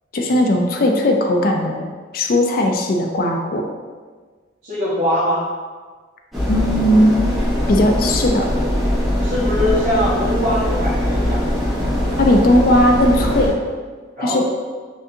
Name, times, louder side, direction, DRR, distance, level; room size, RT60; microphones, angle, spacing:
voice 1, 0.1-1.9 2.1-3.7 6.5-7.2 7.7-8.5 12.2-13.6 14.2-14.4, left 1 dB, 50° left, 2 dB, 0.4 m, -17 dB
voice 2, 4.6-5.4 9.2-11.5 14.2-14.4, equal, 70° right, -14 dB, 1.4 m, -22 dB
sound 1, 6.3-13.5, left 1 dB, ahead, 1.1 m, -21 dB
6.2 x 2.6 x 2.7 m, 1.5 s
head